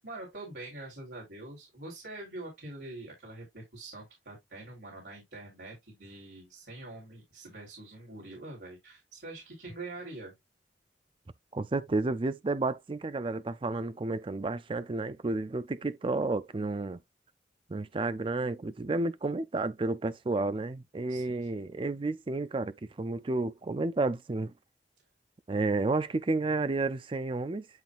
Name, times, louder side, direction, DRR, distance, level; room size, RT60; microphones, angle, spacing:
voice 1, 0.0-10.3 21.1-21.6, right 2 dB, 90° right, 3.8 m, -45 dB
voice 2, 11.5-17.0 17.7-24.5 25.5-27.7, right 3 dB, 30° right, 0.4 m, -31 dB
10.5 x 3.7 x 2.5 m
head